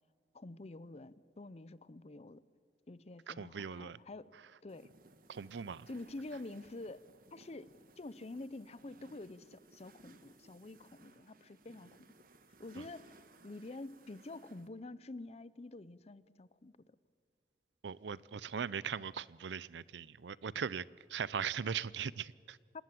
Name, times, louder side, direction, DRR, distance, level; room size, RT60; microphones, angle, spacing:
voice 1, 0.3-2.4 2.9-4.3 4.6-4.9 5.9-12.0 12.6-17.0 22.7-22.8, left 2 dB, 35° left, 0.6 m, -48 dB
voice 2, 3.3-4.0 4.3-4.4 5.3-5.9 12.8-12.9 17.8-22.6, right 7 dB, 80° right, 0.5 m, -40 dB
sound 1, 4.7-14.7, right 3 dB, 55° right, 1.3 m, -62 dB
26.5 x 19.0 x 7.7 m
head